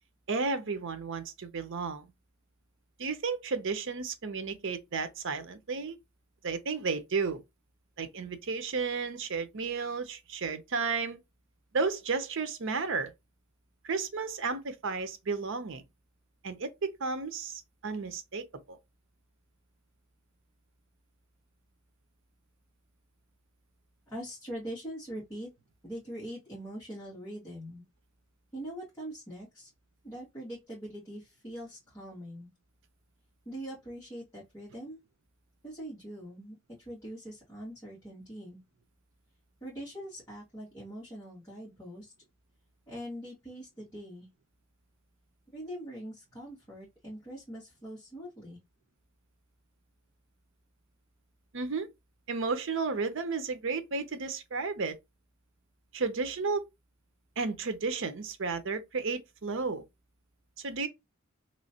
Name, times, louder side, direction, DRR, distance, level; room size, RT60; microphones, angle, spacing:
voice 1, 0.3-2.1 3.0-6.0 6.4-7.4 8.0-11.2 11.7-13.1 13.8-15.8 16.4-18.8 51.5-51.9 52.3-55.0 55.9-56.6 57.4-59.8 60.6-60.9, right 4 dB, 65° right, 0.6 m, -33 dB
voice 2, 24.1-25.5 25.8-27.8 28.5-29.7 30.0-32.5 33.5-35.0 35.6-38.6 39.6-42.1 42.9-44.3 45.5-48.6, equal, 15° left, 1.7 m, -42 dB
3.1 x 3.0 x 2.8 m
head